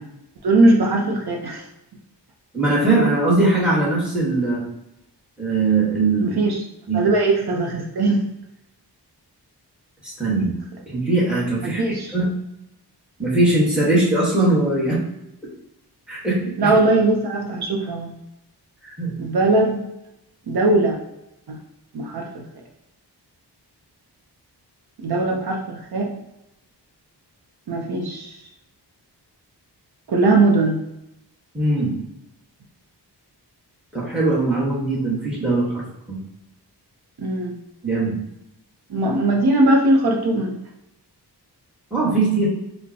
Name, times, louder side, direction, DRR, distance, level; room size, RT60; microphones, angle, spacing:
voice 1, 0.4-1.7 6.2-6.6 6.9-8.3 11.6-12.1 16.6-18.1 19.2-19.9 20.5-21.0 21.5-21.6 21.9-22.5 25.0-26.1 27.7-28.4 30.1-30.8 37.2-37.5 38.9-40.6, right 2 dB, 65° right, 0 dB, 0.7 m, -20 dB
voice 2, 2.5-4.6 5.4-6.3 6.9-7.0 10.0-10.5 10.9-12.3 13.2-15.0 16.1-16.4 18.8-19.1 31.5-31.9 33.9-35.8 36.1-36.2 37.8-38.1 41.9-42.5, right 2 dB, ahead, -6 dB, 1.3 m, -20 dB
5.2 x 2.1 x 2.7 m, 0.86 s
wide cardioid pair, 120°, 41 cm